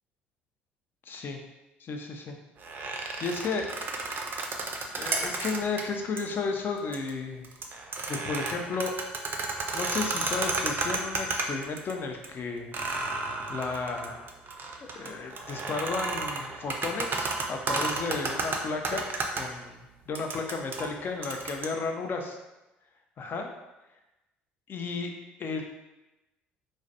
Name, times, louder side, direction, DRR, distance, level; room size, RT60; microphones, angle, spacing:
voice 1, 1.1-1.4 1.8-2.4 2.8-3.7 4.9-7.4 8.1-8.9 9.5-12.7 13.5-14.2 14.8-19.0 19.3-22.4 23.2-23.5 24.7-25.1 25.4-25.6, left 4 dB, 40° left, 3 dB, 0.4 m, -33 dB
sound 1, 2.6-5.8 6.2-6.3 6.8-7.1 7.4-11.9 12.2-12.3 12.7-19.4 20.2-21.7, right 3 dB, 40° right, 0.4 m, -32 dB
2.3 x 2.1 x 2.6 m, 1.0 s
hypercardioid pair, 60°, 5 cm